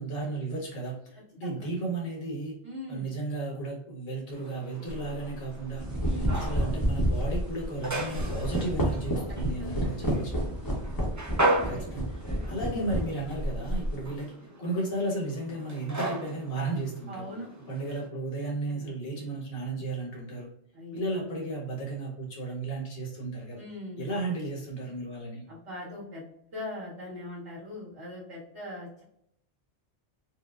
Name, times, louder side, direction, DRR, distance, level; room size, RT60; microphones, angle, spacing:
voice 1, 0.0-2.5 2.9-5.9 6.4-10.5 11.5-12.1 12.4-17.3 17.7-20.5 20.9-23.6 24.0-25.5, right 2 dB, 60° left, -4 dB, 1.3 m, -34 dB
voice 2, 2.6-3.1 6.0-6.5 9.3-10.2 10.4-10.8 11.0-11.3 11.6-12.1 13.9-14.1 17.1-17.5 18.7-18.9 20.7-21.0 23.5-24.0 25.5-29.0, left 1 dB, 65° right, -10 dB, 1.8 m, -42 dB
sound 1, 4.3-18.1, right 1 dB, 30° right, 0.3 m, -36 dB
sound 2, 4.9-5.1 5.6-14.0, equal, 20° left, 0.7 m, -30 dB
4.7 x 2.0 x 2.3 m, 0.72 s
omnidirectional pair, 1.1 m